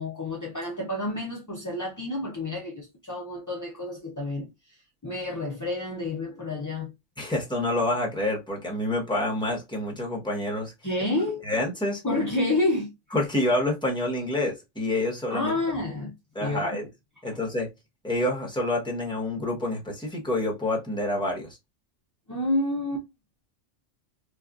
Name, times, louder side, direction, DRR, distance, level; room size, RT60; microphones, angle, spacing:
voice 1, 0.0-6.9 10.8-11.4 12.0-12.9 15.3-16.8 17.2-17.4 22.3-23.1, left 2 dB, 25° left, 0.4 m, -29 dB
voice 2, 7.2-10.7 11.4-12.0 13.1-15.5 16.3-16.9 17.2-17.7 18.0-21.6, left 1 dB, 5° left, 0.7 m, -27 dB
3.2 x 2.3 x 2.3 m
omnidirectional pair, 1.2 m